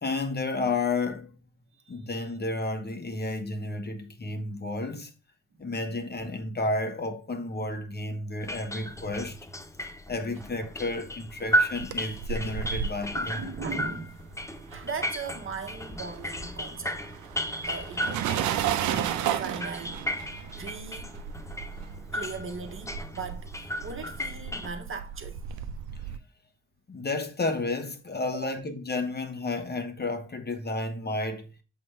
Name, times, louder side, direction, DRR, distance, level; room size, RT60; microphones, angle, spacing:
voice 1, 0.0-1.4 1.9-5.1 5.6-9.4 10.1-13.5 26.9-31.5, left 2 dB, 25° left, 1.3 m, -31 dB
sound 1, 8.4-24.7, equal, 10° left, 0.8 m, -34 dB
sound 2, 11.5-15.2 15.4-26.2, right 9 dB, 55° right, 0.8 m, -34 dB
voice 2, 13.1-14.3 14.7-17.0 17.6-21.1 22.1-25.4 28.3-28.5, right 5 dB, 35° right, 1.3 m, -39 dB
7.6 x 3.8 x 4.7 m
figure-of-eight pair, 45°, 36 cm